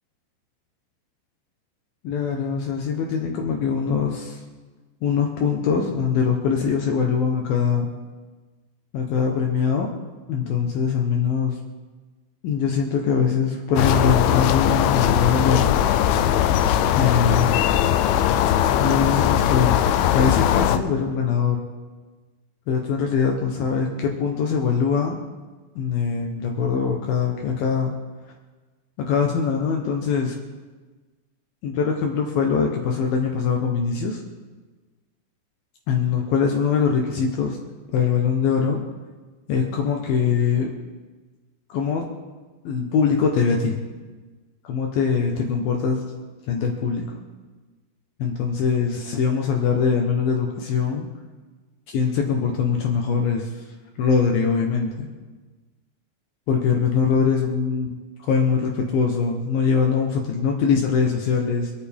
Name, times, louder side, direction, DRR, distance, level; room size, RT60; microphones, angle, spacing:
voice 1, 2.0-4.4 5.0-7.9 8.9-9.9 10.3-11.6 12.4-15.7 16.9-17.5 18.8-19.8 20.1-21.6 22.7-25.2 25.8-27.9 29.0-30.4 31.6-34.2 35.9-37.6 37.9-38.8 39.5-40.7 41.7-42.0 42.6-43.8 44.6-46.0 46.5-47.1 48.2-51.1 51.9-53.6 54.0-55.1 56.5-57.9 58.2-61.7, left 6 dB, 70° left, 1 dB, 2.4 m, -22 dB
sound 1, 13.8-20.8, left 10 dB, 85° left, 2.9 m, -20 dB
26.5 x 9.1 x 3.6 m, 1.3 s
omnidirectional pair, 5.4 m